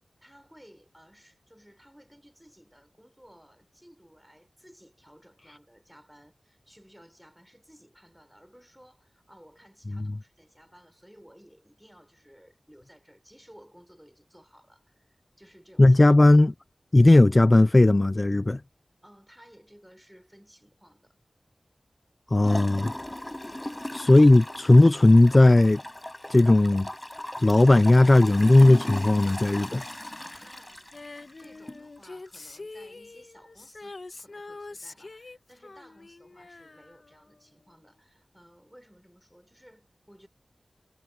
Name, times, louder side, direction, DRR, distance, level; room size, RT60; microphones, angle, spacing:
voice 1, 0.2-16.0 19.0-21.1 23.5-23.8 30.3-30.9 31.4-40.3, equal, 5° right, 6.5 m, -56 dB
voice 2, 15.8-16.5 16.9-18.6 22.3-22.9 23.9-25.8 26.3-26.9 27.4-29.8, left 2 dB, 35° left, 0.7 m, -17 dB
Gurgling / Toilet flush, 22.4-31.8 32.3-32.4, left 1 dB, 20° left, 5.2 m, -38 dB
Female singing, 30.9-37.5 37.8-37.9, left 3 dB, 55° left, 1.4 m, -45 dB
wide cardioid pair, 60°, 0 cm